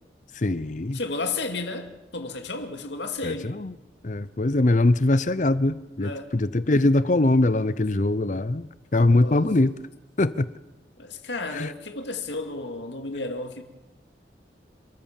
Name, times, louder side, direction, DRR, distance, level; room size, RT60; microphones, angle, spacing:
voice 1, 0.3-1.0 3.2-3.7 4.0-9.8 10.2-10.5 11.5-11.7, left 2 dB, 45° left, 0.7 m, -22 dB
voice 2, 0.9-3.6 6.0-6.3 9.1-9.5 11.0-13.6, left 3 dB, 80° left, 2.4 m, -33 dB
30.0 x 14.0 x 7.4 m
head